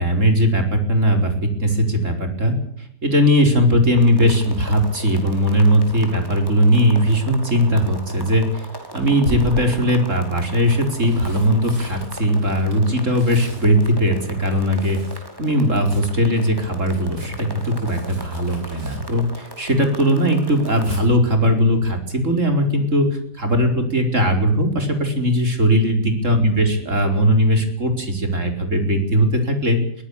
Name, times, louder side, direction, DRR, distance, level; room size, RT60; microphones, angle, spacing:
voice 1, 0.0-8.7 8.9-15.0 15.4-23.1 23.4-29.8, equal, 50° right, 5 dB, 4.9 m, -19 dB
sound 1, 4.0-21.0, right 1 dB, 15° right, 5.1 m, -39 dB
Tearing, 8.0-8.2 9.2-10.0 10.7-15.3 15.5-19.8 20.1-21.0 22.9-23.2 23.5-23.6, right 1 dB, 65° right, 8.1 m, -38 dB
23.0 x 17.0 x 8.5 m, 0.70 s
omnidirectional pair, 1.7 m